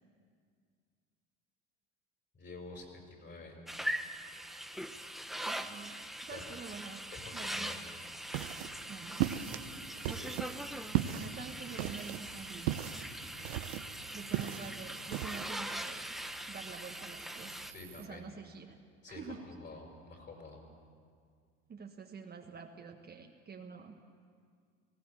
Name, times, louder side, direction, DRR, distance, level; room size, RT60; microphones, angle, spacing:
voice 1, 2.3-3.6 6.3-6.6 7.1-7.8 10.1-10.3 13.2-13.5 17.7-18.3 19.0-20.6, left 3 dB, 35° left, 2 dB, 5.5 m, -49 dB
sound 1, 3.7-17.7, equal, ahead, 0.9 m, -42 dB
voice 2, 5.4-7.0 7.3-7.7 8.9-9.3 11.2-12.8 14.1-16.2 16.5-17.6 18.0-18.8 19.1-19.5 21.7-24.0, right 5 dB, 30° right, 3 dB, 1.5 m, -47 dB
sound 2, 8.1-15.5, right 13 dB, 85° right, 0.8 m, -37 dB
sound 3, 9.1-18.1, right 10 dB, 70° right, 1.7 m, -55 dB
19.0 x 16.5 x 8.4 m, 2.1 s
supercardioid pair, 90°, 30 cm